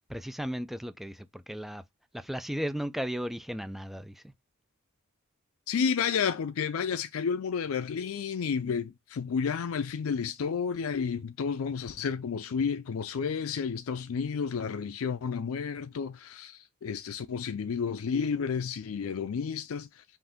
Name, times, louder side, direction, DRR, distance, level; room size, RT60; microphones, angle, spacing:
voice 1, 0.1-1.8 2.1-4.2, equal, ahead, 0.3 m, -35 dB
voice 2, 5.7-20.0, left 6 dB, 80° left, 0.4 m, -31 dB
5.7 x 2.5 x 3.4 m
head